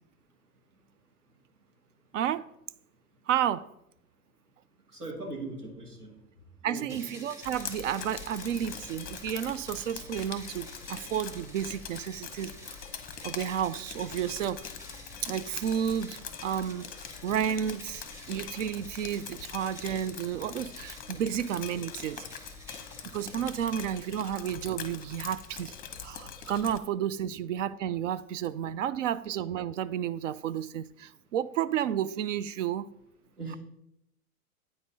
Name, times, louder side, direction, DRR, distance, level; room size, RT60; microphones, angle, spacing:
voice 1, 2.1-2.5 3.3-3.7 6.6-12.8 13.2-14.6 15.2-16.9 17.2-22.2 23.0-25.8 26.0-32.9, right 9 dB, 55° right, 0.5 m, -31 dB
voice 2, 5.0-6.1 6.6-7.3 27.2-27.3 33.4-33.6, right 2 dB, 85° right, 2.3 m, -40 dB
sound 1, 6.9-26.2, left 1 dB, 5° right, 1.0 m, -51 dB
Drip, 7.4-26.8, left 8 dB, 20° left, 0.8 m, -43 dB
8.7 x 4.3 x 5.3 m
figure-of-eight pair, 100°, 45 cm